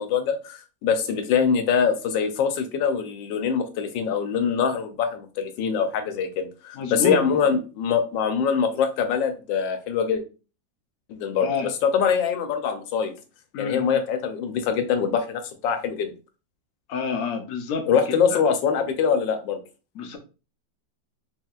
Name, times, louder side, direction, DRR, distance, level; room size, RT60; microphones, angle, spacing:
voice 1, 0.0-10.2 11.1-11.5 11.8-13.1 13.6-16.1 17.9-19.6, left 6 dB, 85° left, 7 dB, 1.4 m, -24 dB
voice 2, 6.7-7.2 11.4-11.7 13.5-14.0 16.9-17.9 18.3-18.4 19.9-20.2, left 5 dB, 60° left, 4 dB, 1.0 m, -28 dB
4.5 x 3.4 x 2.4 m, 0.33 s
omnidirectional pair, 2.0 m